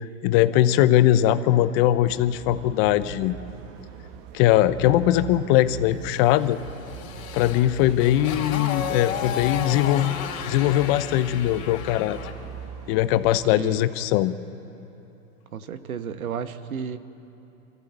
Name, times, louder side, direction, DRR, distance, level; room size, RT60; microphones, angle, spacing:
voice 1, 0.2-3.4 4.3-6.6 7.3-10.1 10.4-12.2 12.9-14.3, left 13 dB, 45° left, 13 dB, 0.9 m, -20 dB
sound 1, 2.1-13.5, right 8 dB, 45° right, 1.2 m, -42 dB
Motorcycle, 6.4-12.4, left 8 dB, 70° left, 2.7 m, -33 dB
voice 2, 15.5-17.0, right 7 dB, 85° right, 10 dB, 1.3 m, -32 dB
25.0 x 15.0 x 8.1 m, 3.0 s
hypercardioid pair, 110°, 42 cm